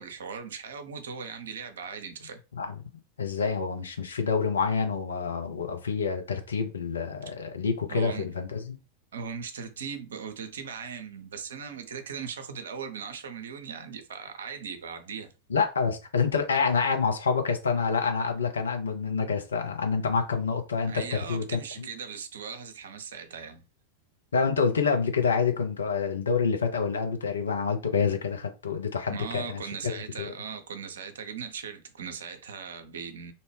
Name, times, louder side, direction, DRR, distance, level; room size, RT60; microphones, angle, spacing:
voice 1, 0.0-2.4 7.9-8.3 9.1-15.3 20.9-23.6 29.1-33.3, right 6 dB, 65° right, 0.4 m, -39 dB
voice 2, 3.2-8.8 15.5-21.9 24.3-30.3, left 5 dB, 70° left, 0.6 m, -27 dB
2.7 x 2.1 x 3.2 m
figure-of-eight pair, 90°, 0 cm